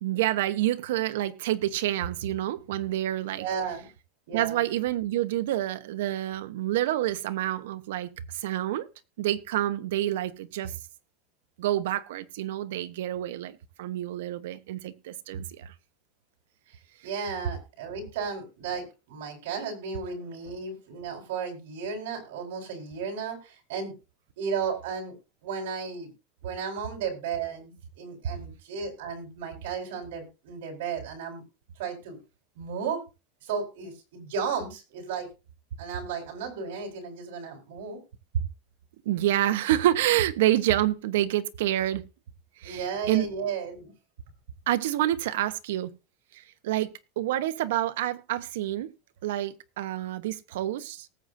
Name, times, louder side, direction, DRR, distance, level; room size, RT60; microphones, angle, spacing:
voice 1, 0.0-3.4 4.3-8.9 9.2-10.8 11.6-15.7 38.3-38.4 39.0-42.0 42.6-43.3 44.7-45.9 46.3-48.9 49.2-51.1, right 13 dB, 90° right, 0.9 m, -28 dB
voice 2, 3.3-3.9 4.3-4.6 17.0-23.9 24.4-25.1 25.4-26.1 26.4-31.4 31.8-32.2 32.5-33.0 33.4-35.3 35.8-38.0 42.6-43.9, right 6 dB, 75° right, 4.4 m, -34 dB
19.0 x 7.9 x 2.7 m
supercardioid pair, 180°, 0 cm